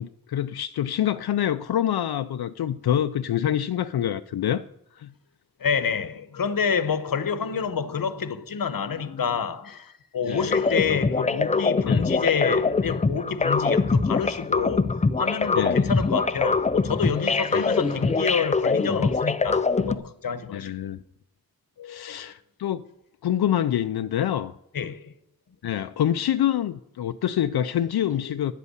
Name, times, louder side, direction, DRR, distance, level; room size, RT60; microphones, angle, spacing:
voice 1, 0.0-4.6 4.9-5.1 10.3-10.5 11.9-12.1 15.6-15.8 17.5-17.6 20.5-21.0 21.8-22.8 23.2-24.5 25.6-28.5, left 10 dB, 80° left, 0.5 m, -26 dB
voice 2, 5.6-20.8 21.8-22.3 24.7-25.0 28.1-28.4, left 6 dB, 65° left, 0.9 m, -28 dB
sound 1, 10.3-20.0, left 4 dB, 20° left, 0.4 m, -23 dB
10.5 x 8.2 x 8.1 m
wide cardioid pair, 105°, 37 cm